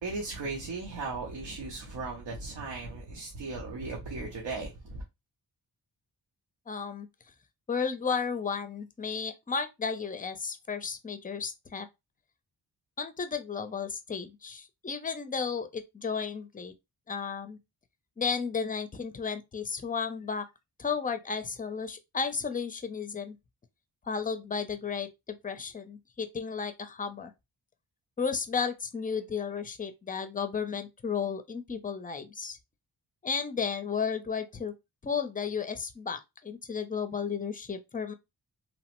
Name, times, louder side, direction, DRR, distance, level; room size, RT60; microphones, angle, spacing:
voice 1, 0.0-5.0, right 3 dB, 85° right, 0.8 m, -37 dB
voice 2, 6.7-7.1 7.7-11.9 13.0-16.7 17.1-17.6 18.2-20.5 20.8-23.4 24.1-27.3 28.2-32.6 33.2-34.7 35.0-38.1, left 6 dB, 20° left, 0.4 m, -33 dB
3.0 x 2.0 x 2.9 m
cardioid pair, 70°, 41 cm